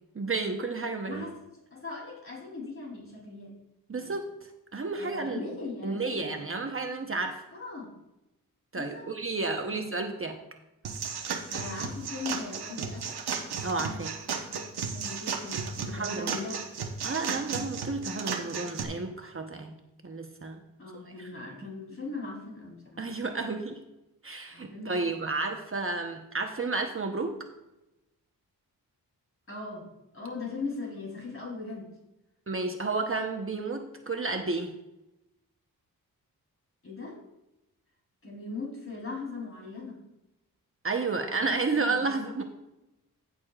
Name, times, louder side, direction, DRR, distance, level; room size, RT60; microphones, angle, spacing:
voice 1, 0.1-1.2 3.9-4.3 4.7-5.4 5.8-7.4 8.7-10.4 13.6-14.1 15.9-16.4 17.0-19.7 20.0-20.6 21.2-21.3 23.0-23.8 24.2-27.3 32.5-34.7 40.8-42.4, right 3 dB, 35° right, 4 dB, 1.0 m, -31 dB
voice 2, 1.7-3.5 4.0-4.2 5.0-6.4 7.5-7.9 8.7-9.1 9.7-9.9 11.5-13.2 14.9-16.6 20.8-23.0 24.5-25.2 29.5-29.8 30.1-31.9 36.8-37.2 38.2-40.0 41.3-42.3, left 3 dB, 35° left, -1 dB, 3.5 m, -39 dB
sound 1, 10.8-18.8, right 5 dB, 85° right, 1.1 m, -34 dB
15.0 x 6.8 x 2.4 m, 0.94 s
cardioid pair, 65°, 38 cm